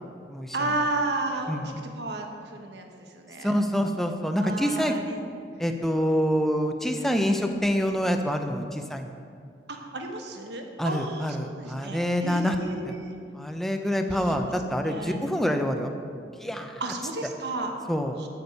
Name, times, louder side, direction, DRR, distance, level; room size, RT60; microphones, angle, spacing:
voice 1, 0.5-3.5 4.4-5.2 9.7-13.1 14.1-14.3 14.8-15.2 16.8-17.7 18.2-18.3, right 2 dB, 70° right, 3 dB, 1.2 m, -33 dB
voice 2, 3.4-5.0 5.6-9.1 10.8-12.6 12.8-13.0 13.3-15.9 16.4-16.8 17.9-18.2, equal, ahead, 4 dB, 0.6 m, -26 dB
12.5 x 7.1 x 5.3 m, 2.3 s
head